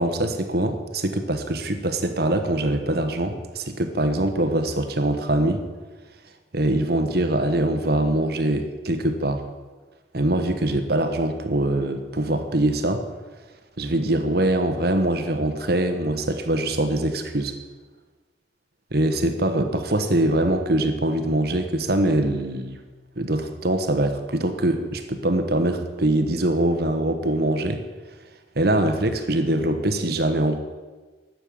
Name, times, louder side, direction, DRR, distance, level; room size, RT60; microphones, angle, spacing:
voice 1, 0.0-5.6 6.5-9.5 10.1-13.0 13.8-17.5 18.9-22.8 23.2-27.8 28.5-30.6, right 1 dB, 55° right, 8 dB, 1.2 m, -23 dB
12.5 x 7.7 x 8.6 m, 1.3 s
head